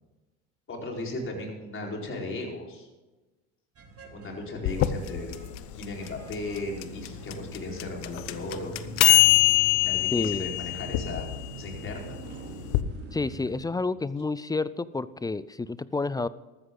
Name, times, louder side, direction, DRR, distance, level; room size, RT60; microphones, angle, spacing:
voice 1, 0.7-2.9 4.1-5.3 5.7-8.8 9.8-11.3 11.6-12.2, left 2 dB, 35° left, 0 dB, 4.6 m, -36 dB
sound 1, 3.8-13.7, right 2 dB, 40° right, 3.0 m, -44 dB
sound 2, 4.7-12.8, left 20 dB, 65° left, 1.0 m, -24 dB
voice 2, 10.1-10.5 13.1-16.3, left 3 dB, 10° left, 17 dB, 0.4 m, -29 dB
14.0 x 13.5 x 3.9 m, 1.1 s
supercardioid pair, 90°, 37 cm